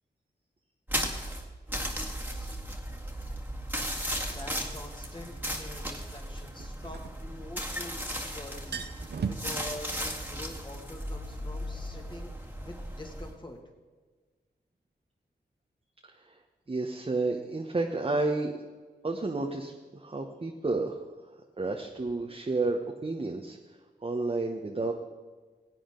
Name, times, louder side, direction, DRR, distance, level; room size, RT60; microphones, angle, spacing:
sound 1, 0.9-13.3, equal, 10° right, 1.9 m, -36 dB
sound 2, 4.1-4.2 6.6-7.9 8.2-8.3 8.5-9.6, right 6 dB, 70° right, 0.7 m, -37 dB
voice 1, 4.2-13.6, left 1 dB, 25° left, 2 dB, 2.2 m, -46 dB
voice 2, 16.7-18.5 19.0-21.0 21.6-23.6 24.0-24.9, right 3 dB, 35° right, 2 dB, 1.0 m, -31 dB
16.5 x 8.5 x 3.9 m, 1.4 s
cardioid pair, 45°, 18 cm